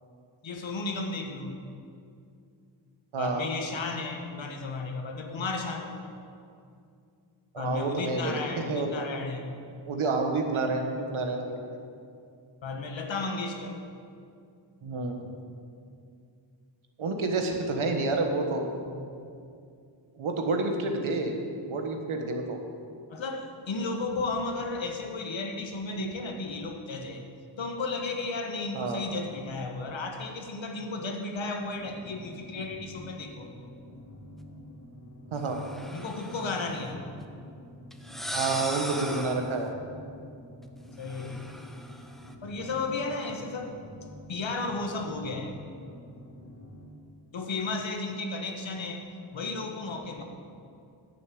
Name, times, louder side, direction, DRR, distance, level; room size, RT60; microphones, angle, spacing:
voice 1, 0.4-1.6 3.2-5.9 7.5-9.4 12.6-13.8 18.9-19.0 23.1-27.2 27.6-33.5 35.9-37.1 41.0-41.4 42.4-43.8 44.3-45.6 47.3-49.0 49.3-50.2, left 3 dB, 70° left, 4 dB, 1.4 m, -34 dB
voice 2, 3.1-3.5 7.5-9.0 9.9-11.6 14.8-15.3 17.0-18.7 20.1-21.3 21.7-22.6 28.7-29.0 35.3-35.6 38.3-39.7, right 3 dB, 85° right, 3 dB, 1.5 m, -29 dB
sound 1, 31.8-46.8, left 1 dB, 35° left, 2.5 m, -47 dB
sound 2, 35.5-36.8 37.9-39.6 41.0-42.3, equal, ahead, 0.7 m, -39 dB
10.5 x 6.6 x 8.6 m, 2.4 s
wide cardioid pair, 100°, 47 cm